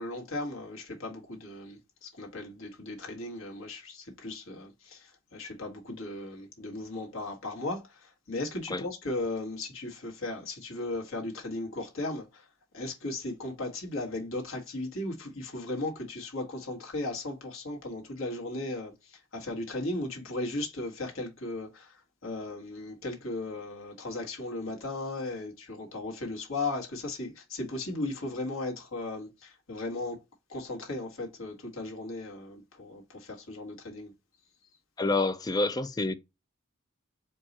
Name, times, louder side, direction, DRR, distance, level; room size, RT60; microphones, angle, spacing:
voice 1, 0.0-12.4 12.7-30.2 30.5-34.1, left 2 dB, 75° left, 1.5 m, -36 dB
voice 2, 35.0-36.1, left 2 dB, 20° left, 0.3 m, -28 dB
4.5 x 2.3 x 4.0 m
head